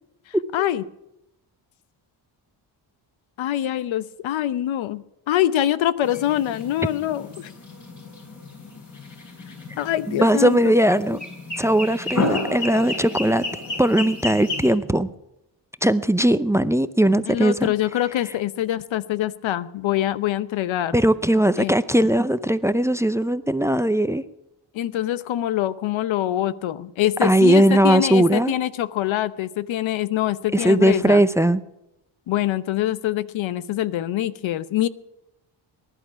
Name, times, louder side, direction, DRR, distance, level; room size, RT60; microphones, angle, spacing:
voice 1, 0.3-0.8 3.4-7.5 9.8-10.7 17.3-21.0 21.6-21.7 24.7-31.2 32.3-34.9, left 12 dB, 85° left, 15 dB, 0.9 m, -24 dB
sound 1, 6.0-14.7, left 2 dB, 40° left, 6.1 m, -32 dB
voice 2, 10.1-11.2 11.6-13.4 13.8-15.1 15.8-17.7 20.9-24.2 27.2-28.5 30.5-31.6, right 1 dB, 5° right, 15 dB, 0.5 m, -19 dB
20.5 x 11.0 x 5.8 m, 0.88 s
cardioid pair, 105°, 46 cm